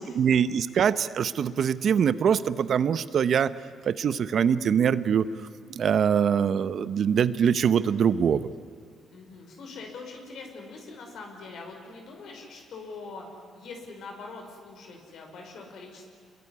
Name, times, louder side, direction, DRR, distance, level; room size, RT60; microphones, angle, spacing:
voice 1, 0.0-3.5 3.9-5.3 5.7-8.5, right 7 dB, 60° right, 14 dB, 0.9 m, -23 dB
voice 2, 9.1-13.3 13.5-16.1, left 3 dB, 70° left, 2 dB, 5.2 m, -43 dB
27.0 x 22.0 x 9.7 m, 2.1 s
cardioid pair, 90°, 0 cm